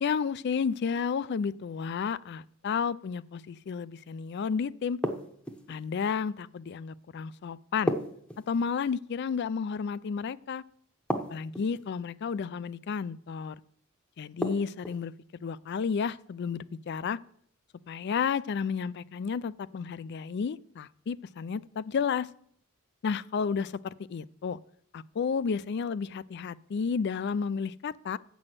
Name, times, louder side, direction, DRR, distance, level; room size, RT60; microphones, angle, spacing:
voice 1, 0.0-5.0 5.7-7.9 8.5-10.6 11.3-13.6 14.2-15.1 15.4-17.2 17.9-22.3 23.0-24.6 24.9-28.2, left 6 dB, 55° left, 19 dB, 0.3 m, -32 dB
sound 1, 5.0-5.8 7.9-8.9 11.1-11.8 14.4-15.0, equal, 5° left, 0.8 m, -33 dB
7.6 x 6.1 x 7.6 m, 0.65 s
head